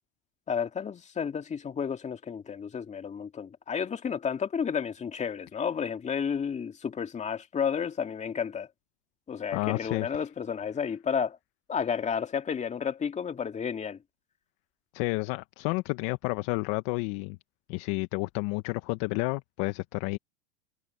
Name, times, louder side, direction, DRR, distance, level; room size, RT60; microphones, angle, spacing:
voice 1, 0.5-8.7 9.3-11.4 11.7-14.0, left 7 dB, 20° left, 2.3 m, -31 dB
voice 2, 9.5-10.1 14.9-17.4 17.7-20.2, left 25 dB, 55° left, 1.2 m, -30 dB
hypercardioid pair, 110°, 34 cm